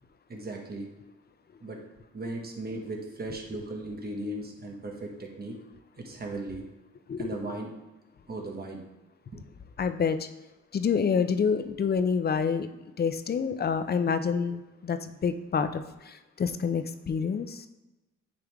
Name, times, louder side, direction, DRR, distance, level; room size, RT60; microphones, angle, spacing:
voice 1, 0.3-0.9 1.6-1.8 2.1-5.6 6.0-6.6 7.2-7.7 8.3-8.8 9.3-9.4, right 2 dB, 30° right, 1 dB, 1.4 m, -37 dB
voice 2, 9.8-10.3 10.7-12.7 13.0-17.6, left 6 dB, 35° left, 10 dB, 0.5 m, -27 dB
9.3 x 3.4 x 3.5 m, 1.0 s
cardioid pair, 90°, 30 cm